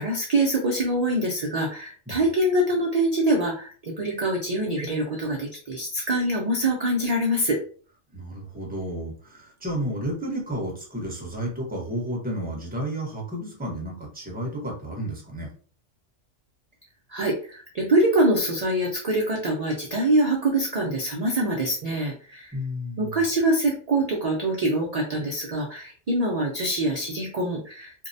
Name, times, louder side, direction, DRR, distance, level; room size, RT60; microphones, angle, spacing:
voice 1, 0.0-7.6 17.1-22.5 23.0-27.9, right 1 dB, 70° right, 0 dB, 0.3 m, -24 dB
voice 2, 8.1-15.5 22.5-23.2, equal, 10° right, -2 dB, 0.6 m, -32 dB
2.6 x 2.0 x 2.5 m, 0.41 s
omnidirectional pair, 1.3 m